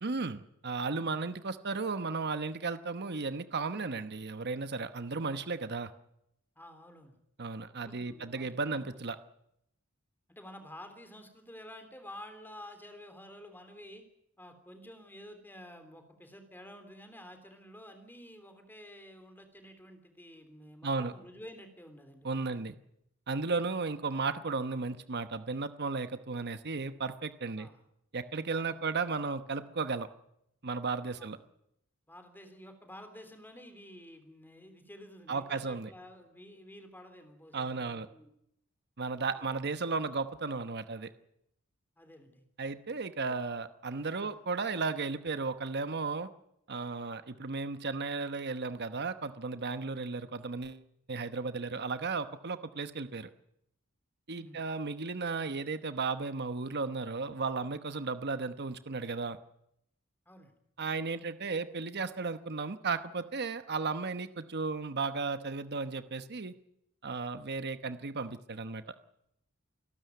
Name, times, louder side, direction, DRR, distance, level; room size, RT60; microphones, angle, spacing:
voice 1, 0.0-5.9 7.4-9.2 20.8-21.1 22.2-22.7 23.3-27.7 28.1-30.1 30.6-31.4 35.3-35.9 37.5-38.1 39.0-41.1 42.6-46.3 46.7-50.8 51.1-53.3 54.3-59.4 60.8-66.5 67.0-68.9, right 4 dB, 50° right, 11 dB, 1.0 m, -35 dB
voice 2, 6.5-7.2 7.8-8.9 10.3-14.0 14.4-22.6 27.6-27.8 28.5-28.8 31.1-31.4 32.1-38.3 39.3-39.5 42.0-42.4 43.3-43.4 44.2-44.3 54.3-54.6 60.2-60.5, left 1 dB, 10° left, 7 dB, 3.4 m, -51 dB
27.5 x 12.5 x 9.4 m, 0.78 s
head